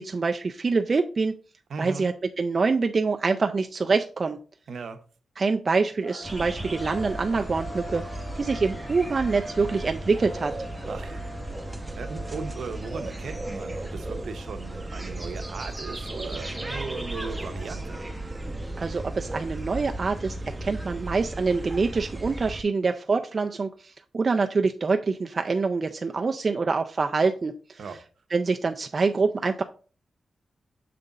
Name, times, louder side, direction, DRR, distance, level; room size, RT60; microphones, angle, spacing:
voice 1, 0.0-1.3 1.8-4.4 5.4-8.0 8.4-10.5 18.8-27.8 28.3-29.6, right 4 dB, 40° right, 0.4 m, -25 dB
voice 2, 1.7-2.1 4.7-5.0 10.8-11.2 11.9-18.0 27.8-28.0, right 5 dB, 70° right, 0.8 m, -37 dB
sound 1, 6.0-18.4, left 1 dB, 70° left, 2.0 m, -45 dB
sound 2, 6.2-22.6, right 2 dB, 10° right, 0.7 m, -35 dB
6.6 x 3.7 x 4.0 m
wide cardioid pair, 120°, 0 cm